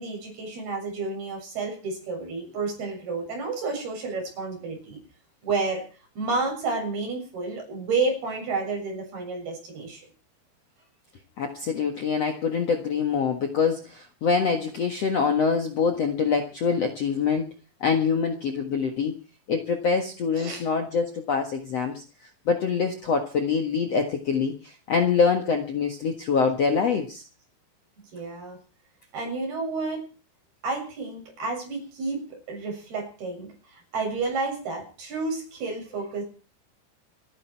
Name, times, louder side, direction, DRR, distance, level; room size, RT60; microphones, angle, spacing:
voice 1, 0.0-5.0 5.4-5.9 6.2-10.1 20.3-20.6 28.1-28.6 29.1-30.1 30.6-36.2, right 3 dB, 55° right, 1 dB, 9.0 m, -30 dB
voice 2, 11.4-17.5 17.8-19.1 19.5-22.0 22.4-27.2, left 5 dB, 65° left, 5 dB, 1.6 m, -25 dB
28.5 x 10.5 x 4.6 m, 0.36 s
omnidirectional pair, 5.4 m